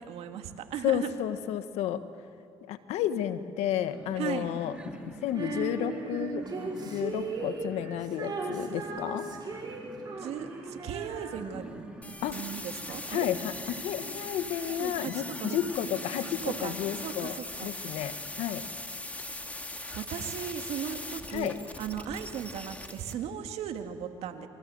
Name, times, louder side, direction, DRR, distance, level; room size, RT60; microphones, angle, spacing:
voice 1, 0.0-1.1 4.2-4.5 10.2-11.7 12.1-13.3 14.7-15.1 15.4-15.6 16.4-16.8 17.0-17.7 19.9-21.5 21.8-24.5, right 9 dB, 75° right, 6 dB, 2.1 m, -37 dB
voice 2, 0.8-2.0 2.7-4.7 5.0-6.4 6.8-9.3 12.2-12.4 13.1-17.3 17.6-18.6 21.3-21.6, left 10 dB, 80° left, 10 dB, 1.5 m, -32 dB
sound 1, 3.9-17.1, right 1 dB, 10° right, 3.4 m, -46 dB
Female singing, 5.3-11.8, right 3 dB, 40° right, 5.5 m, -37 dB
sound 2, 12.0-23.1, left 2 dB, 15° left, 2.7 m, -40 dB
28.5 x 24.0 x 7.9 m, 2.5 s
supercardioid pair, 75°, 11 cm